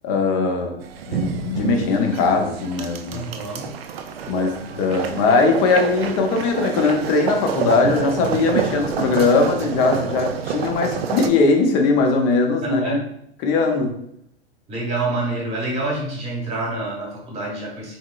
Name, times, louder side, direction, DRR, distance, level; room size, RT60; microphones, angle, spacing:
voice 1, 0.0-0.8 1.1-3.3 4.2-13.0 13.4-14.0, left 4 dB, 35° left, 3 dB, 0.6 m, -20 dB
sound 1, 0.8-11.3, right 7 dB, 70° right, 0.5 m, -28 dB
voice 2, 3.1-3.7 12.6-13.0 14.7-18.0, right 2 dB, 20° right, -3 dB, 1.1 m, -27 dB
3.5 x 3.1 x 2.2 m, 0.72 s
hypercardioid pair, 130°, 31 cm